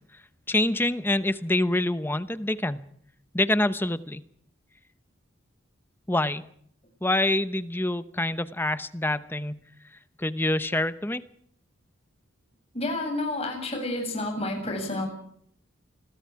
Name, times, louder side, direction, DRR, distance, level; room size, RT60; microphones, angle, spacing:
voice 1, 0.5-2.8 3.3-4.2 6.1-6.4 7.0-9.6 10.2-11.2, left 1 dB, 10° left, 13 dB, 0.9 m, -26 dB
voice 2, 12.7-15.1, left 2 dB, 30° left, 3 dB, 7.4 m, -30 dB
28.5 x 22.0 x 4.8 m, 0.67 s
head